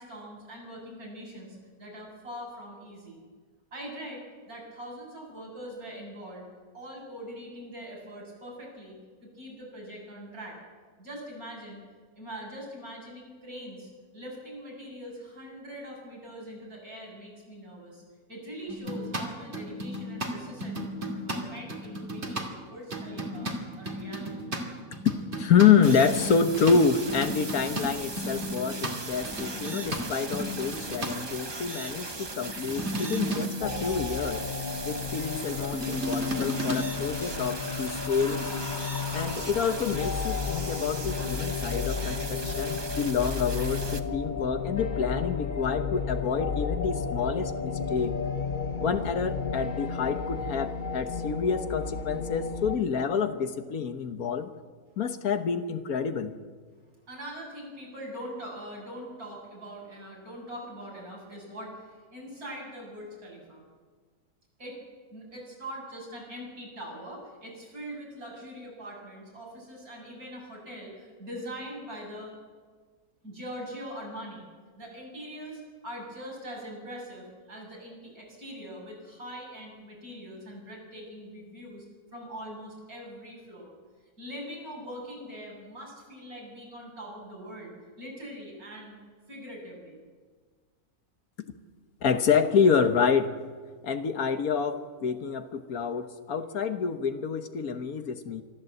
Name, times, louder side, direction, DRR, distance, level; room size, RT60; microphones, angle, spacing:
voice 1, 0.0-3.2 3.7-6.5 6.7-10.6 11.0-11.8 12.1-18.0 18.3-20.9 21.2-23.5 23.8-24.5 57.1-63.6 64.6-64.8 65.1-72.3 73.2-74.5 74.8-81.9 82.1-83.7 84.2-87.7 88.0-89.0 89.3-90.0, equal, 70° right, -2 dB, 7.3 m, -42 dB
sound 1, 18.7-22.5 22.9-31.2 32.2-33.8 35.5-37.2 38.2-38.4, equal, 45° right, 2.7 m, -34 dB
voice 2, 25.4-34.4 34.8-38.7 39.1-48.2 48.8-54.5 55.0-56.3 92.0-93.3 93.8-98.4, left 6 dB, 70° left, 9 dB, 1.6 m, -27 dB
sound 2, 25.8-44.0, right 3 dB, 20° right, 0.8 m, -38 dB
sound 3, 33.6-52.8, left 5 dB, 35° left, 1.0 m, -33 dB
24.5 x 13.5 x 7.9 m, 1.5 s
omnidirectional pair, 1.6 m